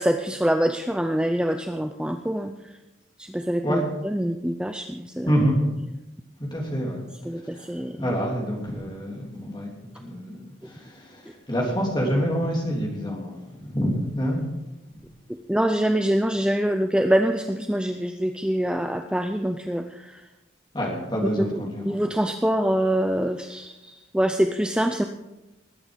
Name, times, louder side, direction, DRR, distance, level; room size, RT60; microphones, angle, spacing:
voice 1, 0.0-2.5 3.2-5.3 7.2-8.1 15.5-20.2 21.4-21.6 21.9-25.0, right 1 dB, 5° right, 6 dB, 0.5 m, -25 dB
voice 2, 5.2-5.6 6.4-7.0 7.5-7.6 8.0-9.7 10.0-14.4 20.7-22.0, equal, 25° left, -1 dB, 3.2 m, -27 dB
20.5 x 8.8 x 5.3 m, 1.0 s
head